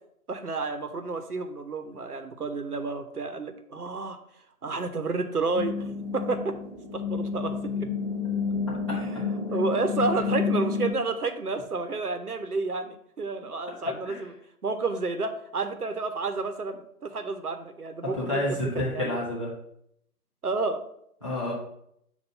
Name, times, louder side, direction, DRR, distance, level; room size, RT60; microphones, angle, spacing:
voice 1, 0.3-4.2 4.6-6.5 6.9-7.9 8.9-9.2 9.5-14.3 14.6-19.2 20.4-20.8, right 3 dB, 75° right, 7 dB, 0.9 m, -30 dB
sound 1, 5.5-10.9, left 5 dB, 10° right, 1.9 m, -30 dB
voice 2, 18.1-19.5 21.2-21.5, left 1 dB, 20° left, -6 dB, 0.8 m, -29 dB
6.8 x 2.6 x 5.5 m, 0.71 s
figure-of-eight pair, 155°, 46 cm